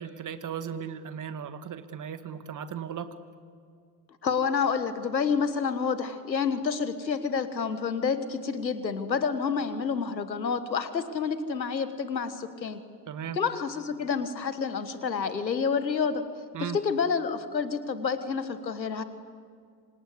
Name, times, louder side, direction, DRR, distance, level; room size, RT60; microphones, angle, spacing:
voice 1, 0.0-3.2 13.1-13.4 16.5-16.8, right 8 dB, 35° right, 10 dB, 2.1 m, -36 dB
voice 2, 4.2-12.8 13.4-16.2 16.6-19.0, left 6 dB, 90° left, 12 dB, 1.5 m, -29 dB
27.5 x 26.5 x 8.0 m, 2.1 s
figure-of-eight pair, 60°, 50 cm